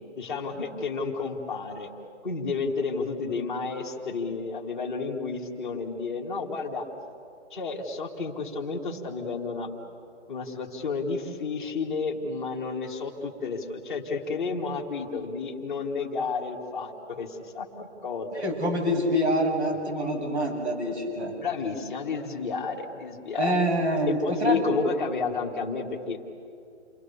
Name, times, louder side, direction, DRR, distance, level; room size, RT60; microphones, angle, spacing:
voice 1, 0.1-1.9 2.2-6.8 7.5-9.7 10.3-18.3 21.4-23.6 24.1-26.3, left 4 dB, ahead, -10 dB, 1.4 m, -31 dB
voice 2, 18.4-21.3 23.4-24.6, equal, 65° right, 1 dB, 7.6 m, -26 dB
29.0 x 23.0 x 6.9 m, 2.4 s
hypercardioid pair, 175°, 37 cm